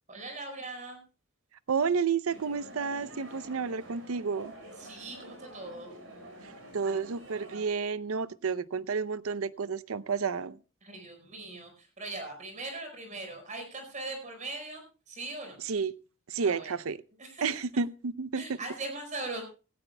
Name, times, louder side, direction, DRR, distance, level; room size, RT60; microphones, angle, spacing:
voice 1, 0.1-1.0 4.8-5.9 10.8-15.6 16.4-16.7 17.2-17.4 18.3-19.4, right 2 dB, 35° right, 5 dB, 4.8 m, -40 dB
voice 2, 1.7-4.5 6.7-10.6 15.7-15.9 16.3-17.0 17.4-18.4, right 5 dB, 85° right, 17 dB, 0.6 m, -31 dB
sound 1, 2.3-7.7, right 1 dB, 65° right, 5.3 m, -48 dB
17.0 x 16.5 x 2.2 m, 0.33 s
head